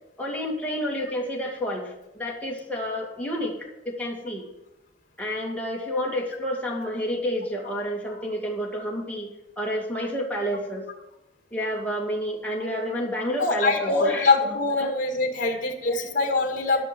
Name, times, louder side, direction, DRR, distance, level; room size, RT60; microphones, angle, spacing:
voice 1, 0.2-3.6 3.8-4.5 5.2-9.3 9.6-10.8 11.5-14.9 15.5-15.6 15.8-16.1 16.8-16.9, equal, 10° left, -3 dB, 2.3 m, -30 dB
voice 2, 13.4-16.8, left 3 dB, 45° left, 3 dB, 1.8 m, -23 dB
12.5 x 6.3 x 7.6 m, 0.90 s
head